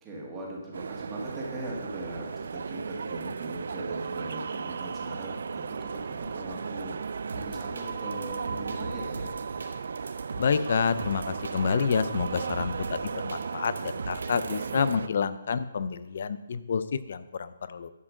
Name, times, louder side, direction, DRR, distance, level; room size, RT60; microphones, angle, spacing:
voice 1, 0.0-9.3 14.5-14.6, right 1 dB, 15° right, -3 dB, 1.8 m, -40 dB
sound 1, 0.7-15.1, right 5 dB, 65° right, 0.3 m, -35 dB
sound 2, 7.3-14.6, right 3 dB, 80° right, 1.4 m, -40 dB
voice 2, 10.4-17.9, left 6 dB, 50° left, 14 dB, 0.5 m, -28 dB
11.0 x 5.0 x 6.3 m, 1.0 s
hypercardioid pair, 170°, 0 cm